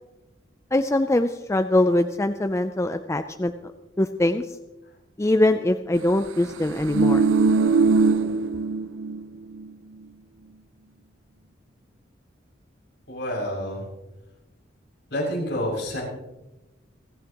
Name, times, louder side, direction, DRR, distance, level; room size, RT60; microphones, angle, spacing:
voice 1, 0.7-3.5 4.0-4.4 5.2-7.2, left 1 dB, 15° left, 9 dB, 0.4 m, -22 dB
sound 1, 6.6-9.2 9.5-9.7, right 4 dB, 80° right, 0.6 m, -21 dB
voice 2, 13.1-13.9 15.1-16.0, equal, 65° left, -3 dB, 6.9 m, -28 dB
29.5 x 10.5 x 3.0 m, 1.0 s
head